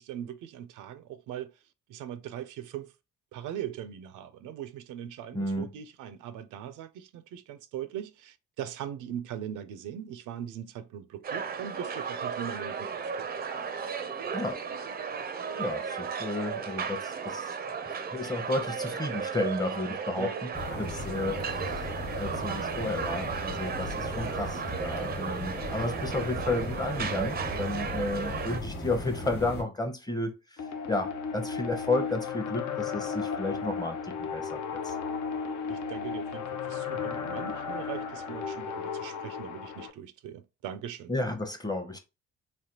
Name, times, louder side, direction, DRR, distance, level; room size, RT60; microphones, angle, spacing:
voice 1, 0.0-1.6 1.9-2.9 3.3-13.3 20.2-20.4 35.7-41.1, right 10 dB, 85° right, 0.5 m, -40 dB
voice 2, 5.3-5.7 14.3-14.6 15.6-17.5 17.9-21.9 22.1-35.0 41.1-42.0, left 2 dB, 15° left, 0.7 m, -32 dB
sound 1, 11.2-28.6, right 6 dB, 30° right, 0.4 m, -35 dB
sound 2, 20.5-29.6, left 1 dB, 35° left, 1.1 m, -37 dB
sound 3, 30.6-39.9, left 6 dB, 75° left, 0.6 m, -34 dB
3.3 x 2.1 x 2.8 m
cardioid pair, 90°, 30 cm